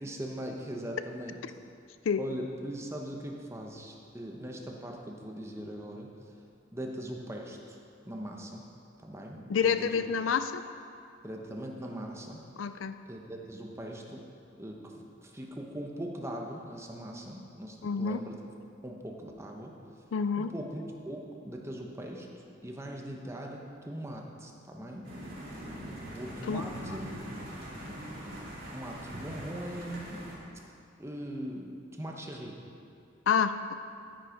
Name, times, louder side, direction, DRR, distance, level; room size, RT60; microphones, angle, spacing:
voice 1, 0.0-1.4 2.2-6.1 6.7-7.8 8.0-8.7 9.0-10.0 11.2-12.5 13.1-14.3 14.6-18.4 18.8-19.7 20.4-22.3 22.6-25.1 26.1-27.1 28.7-30.3 31.0-32.6, right 1 dB, 15° right, 0 dB, 1.0 m, -40 dB
voice 2, 9.5-10.6 12.6-13.0 17.8-18.2 20.1-20.5 26.5-26.6 33.3-33.7, left 6 dB, 85° left, 11 dB, 0.4 m, -28 dB
sound 1, 25.0-30.4, right 1 dB, 50° right, 2.5 m, -42 dB
9.8 x 9.7 x 5.1 m, 2.5 s
head